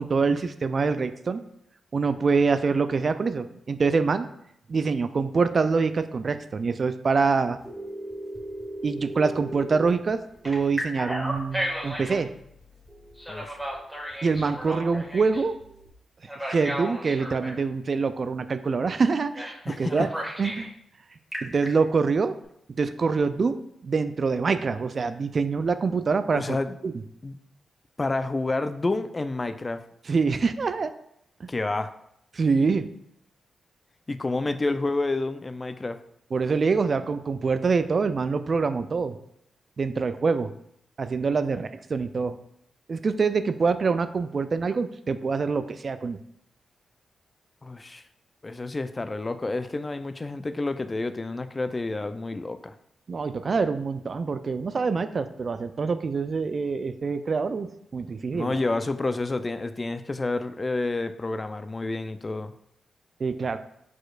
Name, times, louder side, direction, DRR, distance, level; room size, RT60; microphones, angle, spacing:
voice 1, 0.0-1.4 1.9-4.3 4.7-7.6 8.8-10.2 10.4-12.3 14.2-15.5 16.5-20.1 20.4-20.7 21.4-22.4 22.8-26.6 26.8-26.9 30.1-30.9 31.4-31.5 32.3-32.9 36.3-39.2 39.8-40.5 41.0-42.4 42.9-46.2 53.1-58.6 63.2-63.6, right 4 dB, 55° right, 11 dB, 0.3 m, -25 dB
sound 1, 7.2-15.9, right 1 dB, 30° right, 0.9 m, -54 dB
Telephone, 7.7-9.9 10.4-12.2 13.2-15.4 16.3-17.6 19.3-19.6 19.9-20.7 21.1-21.7, right 1 dB, ahead, 1.7 m, -34 dB
voice 2, 19.7-20.1 26.3-26.7 27.2-27.3 28.0-29.8 31.5-31.9 34.1-36.0 47.6-48.0 48.4-52.7 58.3-62.5, left 2 dB, 35° left, 10 dB, 0.4 m, -29 dB
4.5 x 4.3 x 2.4 m, 0.74 s
supercardioid pair, 40°, 0 cm